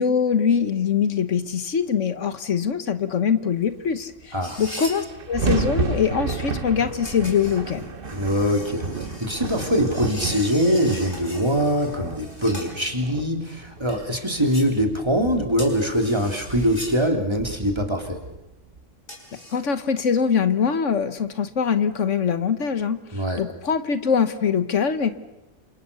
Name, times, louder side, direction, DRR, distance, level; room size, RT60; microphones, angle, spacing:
voice 1, 0.0-7.9 19.5-25.1, left 6 dB, 75° left, 11 dB, 1.5 m, -23 dB
sound 1, 4.2-4.3 4.5-18.8, right 4 dB, 45° right, 1.5 m, -32 dB
sound 2, 4.4-5.0 7.0-12.7 13.9-14.7 15.5-17.0 19.1-19.6, left 1 dB, 40° left, 5.6 m, -39 dB
voice 2, 8.1-8.9 9.2-18.2 23.1-23.4, equal, 20° right, 3 dB, 3.4 m, -23 dB
28.5 x 27.0 x 6.9 m, 0.96 s
omnidirectional pair, 1.3 m